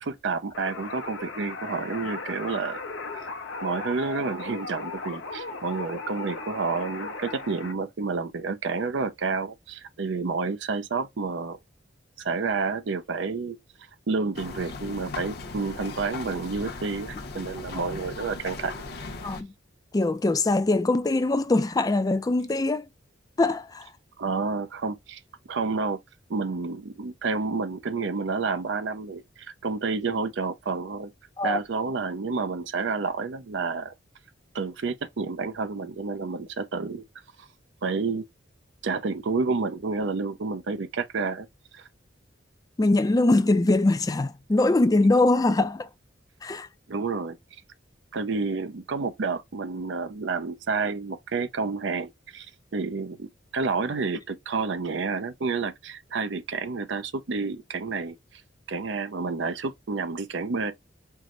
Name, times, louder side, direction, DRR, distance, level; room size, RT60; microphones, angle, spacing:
voice 1, 0.0-2.8 3.1-3.2 3.6-11.6 12.2-13.6 14.1-18.7 24.2-25.2 25.5-26.0 26.3-31.1 31.4-33.9 34.5-37.0 37.4-37.5 37.8-38.2 38.8-41.5 41.7-41.9 46.9-47.4 48.1-52.5 52.7-58.2 58.7-60.7, right 4 dB, 65° right, 0.6 m, -29 dB
sound 1, 0.5-7.7, left 3 dB, 90° left, 0.8 m, -37 dB
sound 2, 14.3-19.4, left 3 dB, 55° left, 0.8 m, -38 dB
voice 2, 19.9-22.9 23.4-23.9 31.4-31.6 42.8-45.9 46.4-46.7, left 2 dB, 20° left, 0.4 m, -22 dB
4.6 x 2.1 x 3.7 m
head